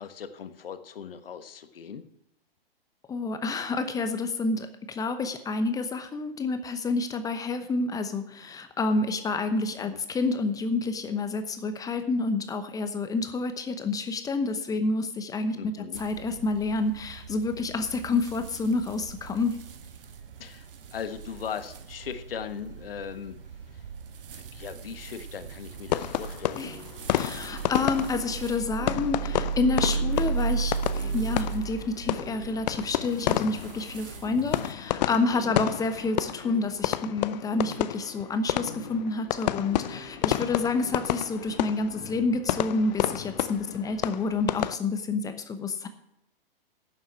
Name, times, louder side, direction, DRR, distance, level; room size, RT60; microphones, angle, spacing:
voice 1, 0.0-2.0 9.8-10.0 15.5-16.0 20.4-23.4 23.7-23.9 24.3-26.6 35.4-35.8 43.6-43.9, left 7 dB, 70° left, 10 dB, 1.2 m, -39 dB
voice 2, 3.1-15.7 16.0-19.6 26.6-26.7 27.1-45.9, left 3 dB, 10° left, 9 dB, 0.9 m, -29 dB
sound 1, 15.9-34.7, right 6 dB, 65° right, 1.5 m, -36 dB
sound 2, 25.9-44.7, left 13 dB, 45° left, 0.6 m, -31 dB
sound 3, 26.6-44.0, left 2 dB, 90° left, 2.3 m, -46 dB
11.5 x 7.2 x 7.2 m, 0.81 s
hypercardioid pair, 120°, 29 cm